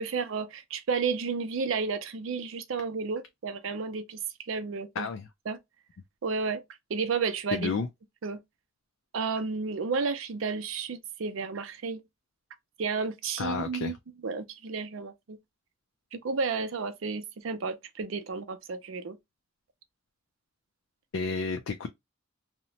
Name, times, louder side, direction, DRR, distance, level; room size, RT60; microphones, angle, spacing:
voice 1, 0.0-5.1 5.5-5.6 6.2-6.6 6.9-7.8 8.2-8.4 9.1-12.0 12.8-13.9 14.2-15.4 16.1-19.2, right 5 dB, 80° right, 0.5 m, -32 dB
voice 2, 5.0-5.3 7.5-7.9 13.4-13.9 21.1-21.9, left 4 dB, 75° left, 0.4 m, -31 dB
2.8 x 2.1 x 2.6 m
head